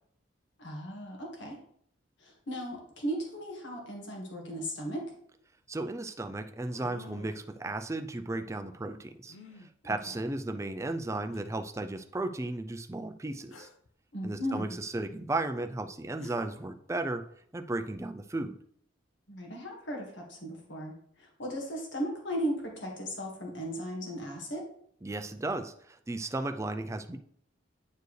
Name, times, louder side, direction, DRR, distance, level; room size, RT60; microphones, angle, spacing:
voice 1, 0.6-1.6 2.2-5.1 9.8-9.9 14.1-14.8 19.3-24.7, equal, 65° left, 0 dB, 1.7 m, -36 dB
sound 1, 5.2-5.3 6.6-7.5 9.3-9.7 10.7-10.8 11.3-11.4 13.5-13.9 15.8-15.9 16.2-16.7, left 3 dB, 90° left, 0.7 m, -50 dB
voice 2, 5.7-9.4 9.6-13.7 14.2-17.2 17.5-18.6 25.0-27.2, right 2 dB, 15° right, 7 dB, 0.4 m, -35 dB
9.3 x 4.5 x 3.2 m, 0.64 s
head